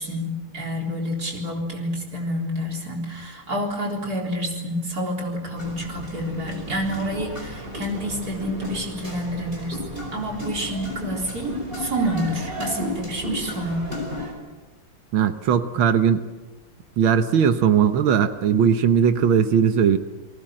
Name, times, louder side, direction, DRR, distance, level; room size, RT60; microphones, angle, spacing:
voice 1, 0.0-13.9, equal, 45° right, 0 dB, 4.5 m, -28 dB
sound 1, 5.6-14.3, left 1 dB, 25° right, 5.5 m, -33 dB
voice 2, 15.1-16.3 17.0-20.0, right 7 dB, 80° right, 10 dB, 1.8 m, -19 dB
29.5 x 19.5 x 7.7 m, 1.2 s
omnidirectional pair, 2.2 m